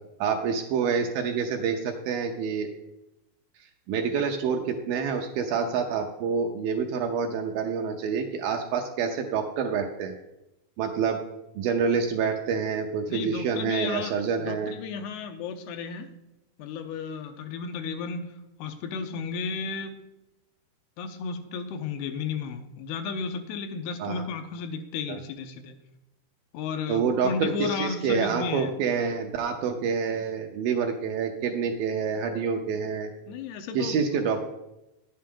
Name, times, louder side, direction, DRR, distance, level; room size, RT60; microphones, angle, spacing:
voice 1, 0.2-2.7 3.9-10.2 10.8-11.2 11.6-14.7 24.0-24.2 25.1-25.2 26.9-33.1 33.7-34.4, right 6 dB, 75° right, 4 dB, 2.2 m, -27 dB
voice 2, 13.1-16.1 16.6-18.3 18.6-20.0 21.0-25.8 26.5-28.7 33.3-34.0, left 5 dB, 85° left, 7 dB, 2.8 m, -33 dB
10.5 x 8.7 x 3.7 m, 0.90 s
omnidirectional pair, 4.7 m